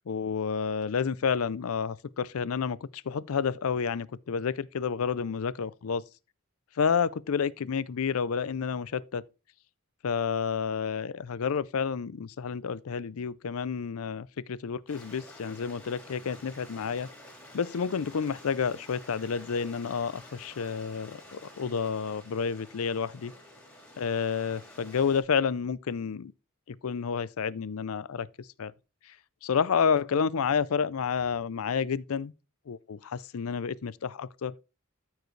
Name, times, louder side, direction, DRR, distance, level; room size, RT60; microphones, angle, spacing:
voice 1, 0.1-6.0 6.8-9.2 10.0-17.1 17.5-23.3 24.0-26.3 26.7-28.7 29.1-29.2 29.4-32.3 32.7-34.5, left 6 dB, 80° left, 0.5 m, -30 dB
Stream, 14.9-25.2, left 1 dB, 5° left, 2.9 m, -50 dB
13.5 x 4.7 x 3.2 m
head